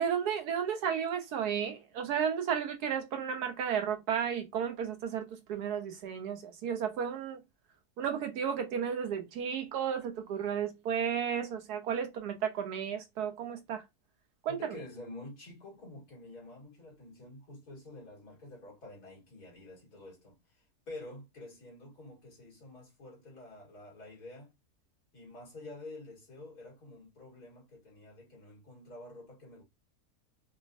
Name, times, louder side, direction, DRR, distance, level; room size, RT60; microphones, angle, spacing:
voice 1, 0.0-7.4 8.0-13.8 14.4-14.8, right 8 dB, 80° right, 1.3 m, -33 dB
voice 2, 14.5-24.5 25.1-29.6, left 2 dB, 75° left, 2.6 m, -49 dB
4.7 x 2.1 x 2.6 m
omnidirectional pair, 1.7 m